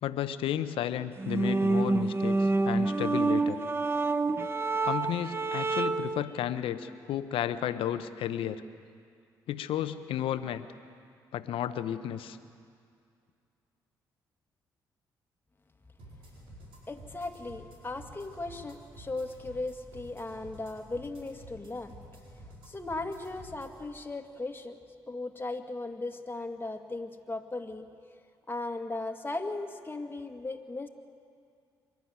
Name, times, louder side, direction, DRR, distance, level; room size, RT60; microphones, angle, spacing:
voice 1, 0.0-3.6 4.8-8.6 9.5-10.7 11.3-12.4, left 10 dB, 75° left, 12 dB, 0.9 m, -33 dB
sound 1, 1.2-6.2, right 3 dB, 25° right, 1.0 m, -27 dB
sound 2, 16.0-23.7, equal, 75° right, 5.0 m, -51 dB
voice 2, 16.9-21.9 22.7-24.8 25.1-27.9 28.5-30.9, left 2 dB, 25° left, 4 dB, 2.1 m, -37 dB
25.0 x 12.0 x 9.6 m, 2.3 s
hypercardioid pair, 50°, 9 cm